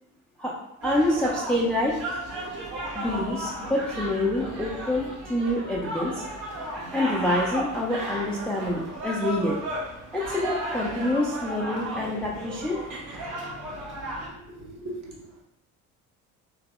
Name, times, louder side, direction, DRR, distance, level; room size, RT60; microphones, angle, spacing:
voice 1, 0.8-2.0 2.9-6.1 6.9-9.6 10.1-12.8, left 1 dB, ahead, -3 dB, 0.4 m, -26 dB
sound 1, 0.8-14.3, right 1 dB, 65° right, 1.0 m, -34 dB
voice 2, 14.2-15.4, right 1 dB, 40° right, -1 dB, 0.9 m, -40 dB
3.2 x 2.9 x 2.4 m, 0.82 s
hypercardioid pair, 55°, 44 cm